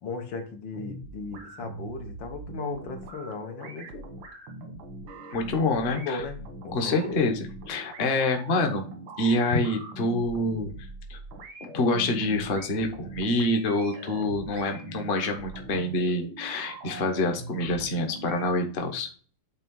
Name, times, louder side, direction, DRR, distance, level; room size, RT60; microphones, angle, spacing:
voice 1, 0.0-4.1 5.9-7.3, left 4 dB, 80° left, 4 dB, 1.9 m, -36 dB
sound 1, 0.7-18.5, right 2 dB, 90° right, 2.0 m, -42 dB
voice 2, 5.3-6.2 6.7-8.8 9.2-10.7 11.1-11.2 11.6-19.1, left 2 dB, 40° left, 4 dB, 1.0 m, -26 dB
8.4 x 3.1 x 5.3 m, 0.42 s
omnidirectional pair, 2.1 m